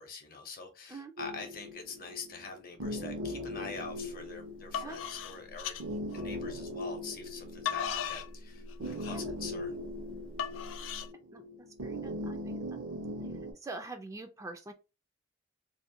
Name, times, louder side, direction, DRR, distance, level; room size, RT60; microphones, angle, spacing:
voice 1, 0.0-5.8 6.1-9.8, left 4 dB, 50° left, 0.7 m, -45 dB
sound 1, 1.2-13.5, left 1 dB, 80° right, 0.7 m, -40 dB
sound 2, 3.9-4.2 4.6-6.7 7.2-11.1, left 8 dB, 90° left, 0.3 m, -37 dB
voice 2, 11.3-12.8 13.6-14.7, right 3 dB, 15° right, 0.3 m, -45 dB
2.5 x 2.1 x 2.7 m
head